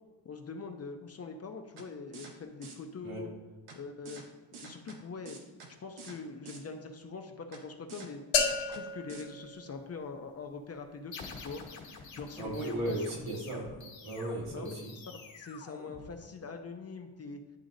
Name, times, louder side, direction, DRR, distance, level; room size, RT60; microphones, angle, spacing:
voice 1, 0.2-3.3 3.8-4.2 4.6-5.4 5.8-8.2 8.7-11.6 12.1-13.0 14.5-14.7 15.1-17.4, left 4 dB, 35° left, 5 dB, 0.4 m, -43 dB
sound 1, 1.8-1.9 2.1-2.3 2.6-2.8 3.7-3.8 4.1-4.2 4.5-5.0 5.3-5.7 6.0-6.2 6.5-6.6 7.5-7.6 7.9-8.1 8.4-8.8 9.1-9.2, right 5 dB, 75° right, 1.1 m, -47 dB
sound 2, 8.3-10.3, left 5 dB, 85° left, 1.0 m, -33 dB
sound 3, 11.1-16.5, left 4 dB, 65° left, 1.3 m, -48 dB
voice 2, 12.4-13.7 14.0-14.9, right 1 dB, 90° right, -3 dB, 1.9 m, -36 dB
10.5 x 3.9 x 2.6 m, 1.3 s
wide cardioid pair, 160°, 49 cm